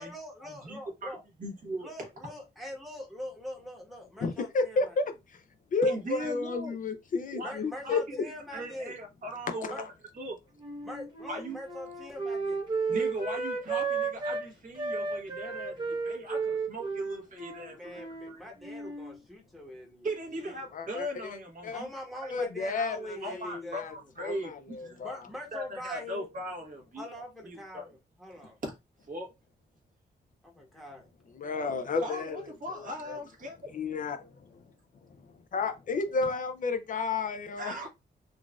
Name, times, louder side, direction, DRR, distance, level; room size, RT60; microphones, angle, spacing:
voice 1, 0.0-1.2 1.8-5.0 7.4-8.9 9.7-9.8 10.8-12.6 17.7-20.7 21.7-24.0 25.0-26.3 27.0-28.6 30.4-31.1, left 1 dB, ahead, 1.1 m, -43 dB
voice 2, 0.6-1.1 1.4-2.1 5.8-6.7 7.3-7.5 7.8-9.9 10.2-10.4 11.3-11.6 12.9-18.0 18.3-18.4 20.0-21.9 22.2-22.3 23.2-25.0 25.5-27.0 27.4-27.9 28.6-28.7 29.1-29.3 31.9-33.6 37.5-37.9, right 1 dB, 50° right, 1.2 m, -39 dB
voice 3, 4.2-5.0 5.7-8.2 9.6-9.7 20.7-21.4 21.6-21.8 22.3-23.4 23.7-23.9 24.2-25.2 31.3-32.4 33.1-33.2 33.7-34.3 35.5-37.9, left 4 dB, 50° left, 0.4 m, -31 dB
Wind instrument woodwind instrument, 10.6-14.5 14.8-18.3 18.6-19.1, right 4 dB, 25° right, 0.9 m, -33 dB
3.8 x 2.4 x 2.3 m
wide cardioid pair, 150°, 18 cm